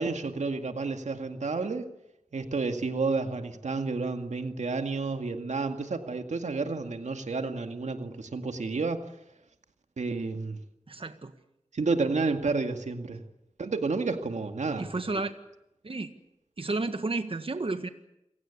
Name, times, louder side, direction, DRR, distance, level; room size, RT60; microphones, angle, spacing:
voice 1, 0.0-1.9 2.3-9.0 10.0-10.6 11.7-13.2 13.6-14.9, right 4 dB, 85° right, 6 dB, 2.1 m, -30 dB
voice 2, 10.9-11.3 14.8-15.3 15.8-16.1 16.6-17.9, right 3 dB, 50° right, 8 dB, 1.7 m, -32 dB
28.5 x 17.5 x 8.4 m, 0.86 s
cardioid pair, 45°, 12 cm